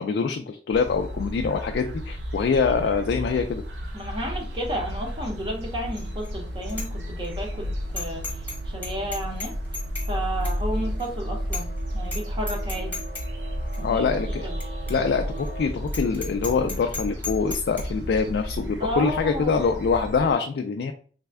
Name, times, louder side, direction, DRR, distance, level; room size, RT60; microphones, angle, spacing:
voice 1, 0.0-3.6 13.8-14.5 14.9-20.9, left 5 dB, 65° left, 5 dB, 0.3 m, -24 dB
sound 1, 0.7-20.3, equal, 80° right, 0.6 m, -32 dB
voice 2, 3.9-9.5 10.1-12.9 13.8-14.6 18.8-19.8, equal, 30° right, 0 dB, 0.7 m, -32 dB
sound 2, 5.8-15.7, right 3 dB, 55° right, 0.9 m, -45 dB
Bicycle bell, 6.0-6.3 6.7-6.9 7.2-7.3 8.0-8.6 8.8-10.1 10.4-10.6 11.0-11.1 11.5-11.8 12.0-12.2 12.5-13.2 13.7-13.8 14.6-14.7 14.9-15.0 15.4-15.5 15.9-17.8, left 3 dB, 10° left, 1.0 m, -34 dB
3.3 x 2.1 x 3.4 m, 0.44 s
head